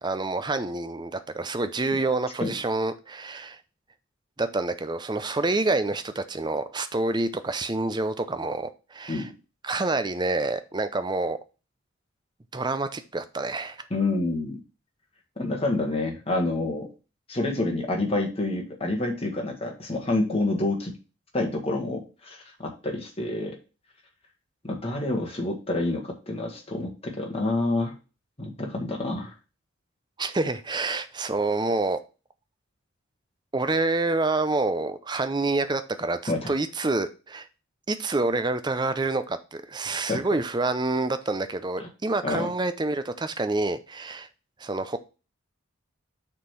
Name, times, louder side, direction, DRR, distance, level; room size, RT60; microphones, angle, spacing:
voice 1, 0.0-3.6 4.4-9.3 9.6-11.4 12.5-13.8 30.2-32.0 33.5-37.5 37.9-44.3 44.6-45.0, right 2 dB, 20° right, 11 dB, 0.5 m, -27 dB
voice 2, 13.9-14.6 15.4-16.9 17.3-20.9 21.3-23.6 24.6-27.9 28.4-29.3 36.3-36.5 40.1-40.2 41.8-41.9 42.2-42.5, left 2 dB, 30° left, 1 dB, 1.7 m, -28 dB
6.4 x 3.8 x 5.8 m, 0.32 s
head